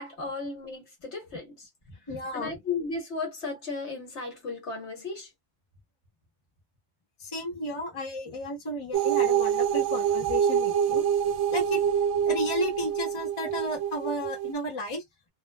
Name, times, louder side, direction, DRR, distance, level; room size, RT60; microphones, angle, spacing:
voice 1, 0.0-1.7 2.3-5.3, left 4 dB, 60° left, 1.3 m, -35 dB
voice 2, 2.1-2.6 7.2-11.1 11.5-11.8 12.2-15.0, left 1 dB, 25° left, 0.9 m, -33 dB
sound 1, 8.9-14.5, right 8 dB, 70° right, 0.9 m, -26 dB
2.5 x 2.2 x 2.2 m
omnidirectional pair, 1.3 m